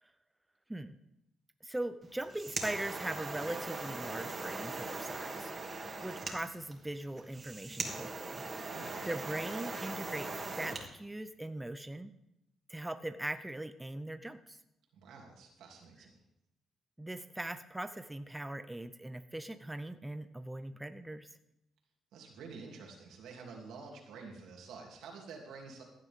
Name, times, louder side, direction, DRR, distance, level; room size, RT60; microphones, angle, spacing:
voice 1, 1.6-8.5 9.1-12.1 12.7-14.6 17.0-21.3, right 1 dB, 10° right, 10 dB, 0.6 m, -40 dB
sound 1, 2.1-10.9, right 3 dB, 35° right, 2.5 m, -40 dB
voice 2, 8.7-9.1 14.9-16.2 22.1-25.8, right 4 dB, 85° right, 0 dB, 3.0 m, -49 dB
16.0 x 10.5 x 3.7 m, 0.85 s
cardioid pair, 90°, 0 cm